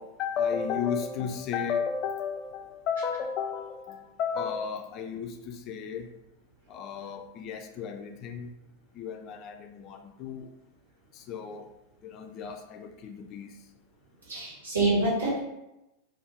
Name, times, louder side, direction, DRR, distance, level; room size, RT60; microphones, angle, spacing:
voice 1, 0.0-6.1 6.7-8.5 8.9-10.5 11.1-11.7 12.0-13.7, left 7 dB, 35° left, 5 dB, 0.3 m, -33 dB
voice 2, 14.3-15.4, right 2 dB, 75° right, -6 dB, 1.3 m, -26 dB
2.6 x 2.4 x 3.4 m, 0.92 s
figure-of-eight pair, 90°, 0 cm